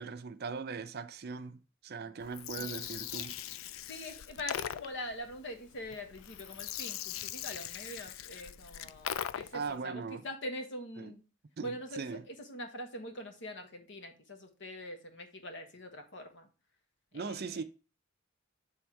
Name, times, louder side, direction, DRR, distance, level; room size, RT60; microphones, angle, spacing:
voice 1, 0.0-3.4 9.5-10.2 11.0-11.1 11.6-12.2 17.1-17.6, right 5 dB, 50° right, 0.5 m, -40 dB
Gurgling, 2.2-9.7, left 10 dB, 80° left, 0.4 m, -41 dB
voice 2, 3.9-11.2 11.6-16.5 17.1-17.6, left 1 dB, 60° left, 1.3 m, -43 dB
7.5 x 3.5 x 4.6 m
head